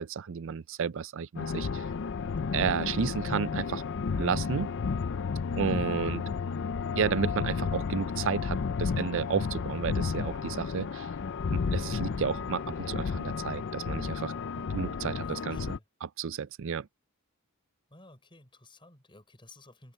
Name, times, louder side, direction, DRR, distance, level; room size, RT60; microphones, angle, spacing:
voice 1, 0.0-1.8 2.5-3.8 4.2-4.7 5.6-6.2 6.9-11.1 11.5-14.3 14.7-15.6 16.0-16.9, right 6 dB, 60° right, 0.4 m, -32 dB
sound 1, 1.4-15.8, left 5 dB, 55° left, 0.5 m, -32 dB
voice 2, 15.2-15.8 17.9-19.9, left 2 dB, 25° left, 6.1 m, -54 dB
head